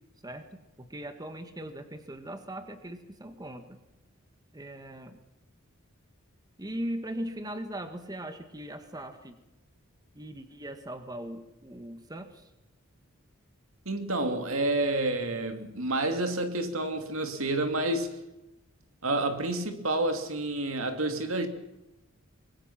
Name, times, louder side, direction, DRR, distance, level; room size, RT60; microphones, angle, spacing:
voice 1, 0.2-3.8 4.5-5.2 6.6-9.4 10.1-12.5, right 1 dB, 20° right, 1.6 m, -39 dB
voice 2, 13.8-18.2 19.0-21.5, right 2 dB, 70° right, 2.7 m, -29 dB
25.0 x 22.0 x 6.0 m
head